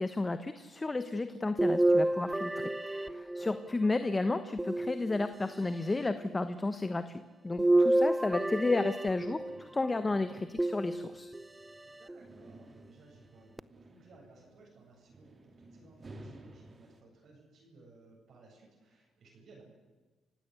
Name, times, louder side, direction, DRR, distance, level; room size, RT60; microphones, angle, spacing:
voice 1, 0.0-11.3, left 3 dB, 20° left, 11 dB, 1.2 m, -32 dB
sound 1, 1.6-3.9 4.6-5.6 7.6-9.7 10.6-11.5 12.1-12.2 13.6-13.7, right 1 dB, 10° right, 0.7 m, -29 dB
sound 2, 9.1-17.0, right 2 dB, 35° right, 2.8 m, -55 dB
voice 2, 11.8-19.6, right 3 dB, 60° right, -1 dB, 7.8 m, -59 dB
29.0 x 16.0 x 8.2 m, 1.3 s
cardioid pair, 90°, 0 cm